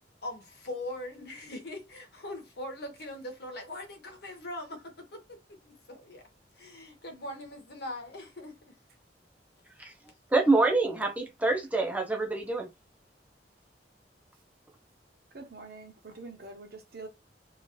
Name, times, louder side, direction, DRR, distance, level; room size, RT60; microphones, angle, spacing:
voice 1, 0.2-6.2 6.6-8.7, left 1 dB, 65° left, 1.1 m, -41 dB
voice 2, 10.3-12.7, right 3 dB, 10° right, 0.5 m, -26 dB
voice 3, 15.3-17.1, right 3 dB, 60° right, 0.8 m, -45 dB
2.8 x 2.4 x 3.0 m
head